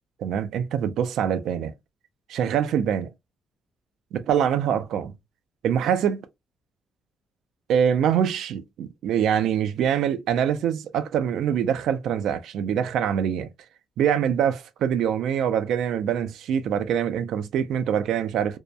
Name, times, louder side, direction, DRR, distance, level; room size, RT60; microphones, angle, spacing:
voice 1, 0.2-1.7 2.3-3.1 4.1-5.2 5.6-6.3 7.7-13.5 14.0-18.6, right 8 dB, 80° right, 0.4 m, -24 dB
2.6 x 2.1 x 2.2 m
cardioid pair, 90°, 0 cm